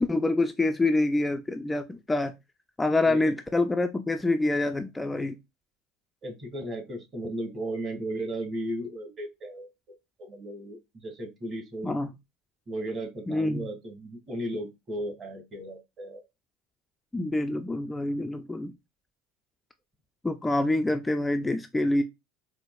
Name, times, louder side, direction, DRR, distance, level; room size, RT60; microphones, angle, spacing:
voice 1, 0.0-2.3 2.8-5.4 11.8-12.1 13.3-13.7 17.1-18.7 20.2-22.0, left 2 dB, 15° left, 0.3 m, -26 dB
voice 2, 5.0-5.3 6.2-9.7 10.2-11.9 12.7-16.2, right 1 dB, 35° right, 1.7 m, -35 dB
4.5 x 2.0 x 2.3 m
hypercardioid pair, 85°, 0 cm